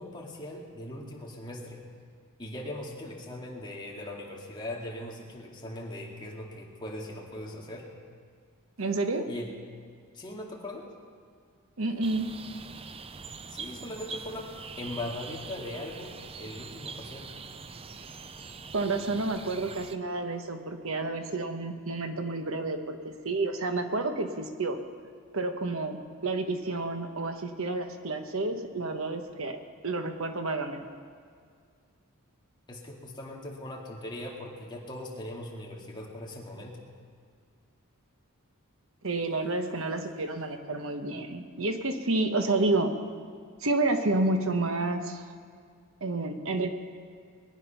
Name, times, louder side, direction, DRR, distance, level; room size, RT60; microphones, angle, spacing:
voice 1, 0.0-1.8 2.4-7.9 9.3-9.5 10.1-10.9 13.5-14.5 14.8-17.3 32.7-36.8, left 1 dB, 20° left, -2 dB, 2.3 m, -40 dB
voice 2, 8.8-9.3 11.8-12.4 18.7-24.8 25.3-30.9 39.0-42.9 43.6-45.3 46.0-46.7, right 2 dB, 65° right, 6 dB, 1.1 m, -30 dB
sound 1, 12.0-20.0, right 5 dB, 25° right, 0.5 m, -43 dB
22.0 x 9.5 x 5.8 m, 2.1 s
head